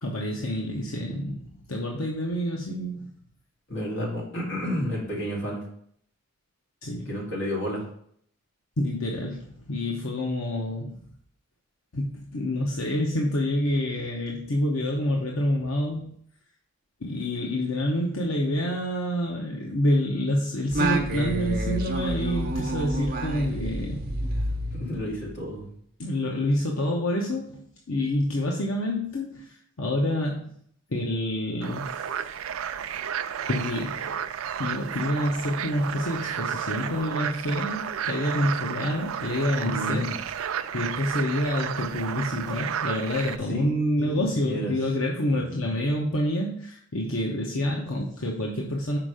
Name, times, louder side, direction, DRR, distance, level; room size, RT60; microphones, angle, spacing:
voice 1, 0.0-3.1 6.8-7.1 8.8-11.0 11.9-16.2 17.0-24.0 26.0-27.6 27.9-30.5 30.9-32.1 33.5-34.1 34.6-40.0 40.7-49.0, left 1 dB, 90° left, -1 dB, 0.9 m, -27 dB
voice 2, 3.7-5.6 7.1-7.8 24.7-25.6 39.6-40.2 43.5-44.7 45.3-45.7, equal, 60° left, -4 dB, 2.6 m, -31 dB
Singing, 20.7-25.5, right 1 dB, 45° right, 0.9 m, -29 dB
sound 1, 31.6-43.4, right 8 dB, 90° right, 0.4 m, -32 dB
6.0 x 4.6 x 5.0 m, 0.65 s
head